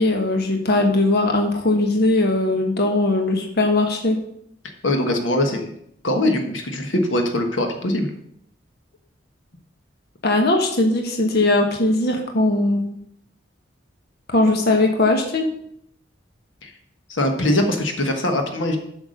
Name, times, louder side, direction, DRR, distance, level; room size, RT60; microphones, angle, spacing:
voice 1, 0.0-4.2 10.2-13.0 14.3-15.4, left 2 dB, 55° left, 3 dB, 1.2 m, -19 dB
voice 2, 4.8-5.7 6.0-8.1 16.6-16.7 17.1-18.8, left 1 dB, 85° left, 5 dB, 1.3 m, -22 dB
7.9 x 6.0 x 6.4 m, 0.72 s
head